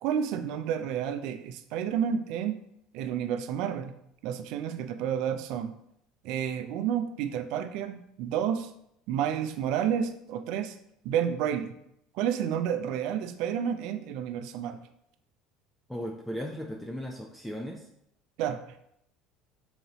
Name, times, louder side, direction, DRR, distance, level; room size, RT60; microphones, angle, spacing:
voice 1, 0.0-2.5 2.9-3.9 4.2-5.7 6.2-8.7 9.1-10.8 11.0-11.8 12.1-14.8 18.4-18.6, right 9 dB, 65° right, 9 dB, 0.4 m, -30 dB
voice 2, 15.9-17.8, equal, 5° left, 0 dB, 0.6 m, -36 dB
3.9 x 3.9 x 2.9 m, 0.75 s
hypercardioid pair, 75°, 0 cm